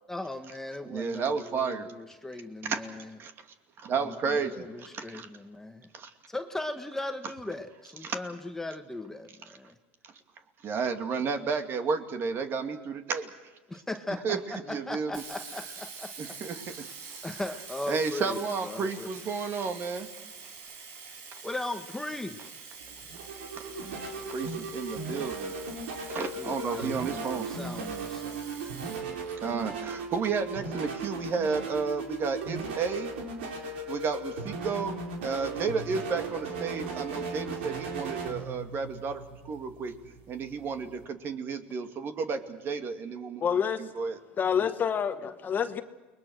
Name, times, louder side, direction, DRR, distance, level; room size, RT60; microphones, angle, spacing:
voice 1, 0.1-3.2 3.9-5.9 6.3-9.7 13.7-16.1 17.2-19.1 21.4-22.4 26.4-28.9 44.6-44.7, left 2 dB, 5° left, 6 dB, 1.4 m, -38 dB
voice 2, 0.9-1.9 2.6-2.8 3.2-3.3 3.8-5.3 5.9-6.1 8.0-8.2 10.0-10.1 10.6-13.3 14.2-15.2 16.2-16.9 17.9-20.1 21.3-21.4 23.6-23.7 24.3-25.5 26.1-27.5 29.4-33.1 33.9-39.9 40.3-43.4 43.8-44.2, right 5 dB, 40° right, 7 dB, 2.5 m, -32 dB
Sink (filling or washing), 15.1-29.9, right 5 dB, 70° right, 5.9 m, -46 dB
sound 1, 22.8-41.0, right 3 dB, 85° right, 4.3 m, -37 dB
voice 3, 43.4-43.8 44.4-45.8, left 7 dB, 30° left, 9 dB, 1.4 m, -27 dB
29.5 x 21.0 x 6.4 m, 1.2 s
supercardioid pair, 110°, 6 cm